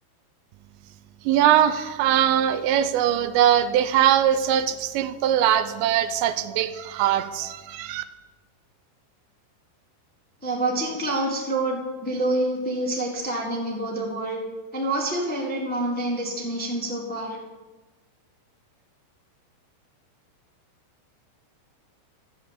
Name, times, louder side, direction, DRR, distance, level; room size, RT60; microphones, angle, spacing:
voice 1, 1.3-8.0, right 10 dB, 80° right, 11 dB, 2.9 m, -21 dB
voice 2, 10.4-14.4 14.7-17.4, right 1 dB, 5° left, -2 dB, 1.2 m, -27 dB
13.0 x 7.8 x 9.2 m, 1.3 s
omnidirectional pair, 5.2 m